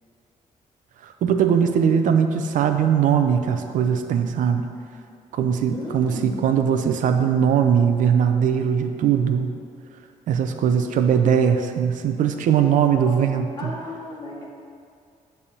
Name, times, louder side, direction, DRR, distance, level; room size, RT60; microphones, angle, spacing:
voice 1, 1.0-4.7 5.3-9.5 10.3-13.7, right 7 dB, 75° right, 7 dB, 0.6 m, -20 dB
voice 2, 5.7-6.4 12.9-14.5, left 2 dB, 35° left, -3 dB, 1.4 m, -35 dB
9.4 x 3.5 x 6.9 m, 2.3 s
wide cardioid pair, 175°, 13 cm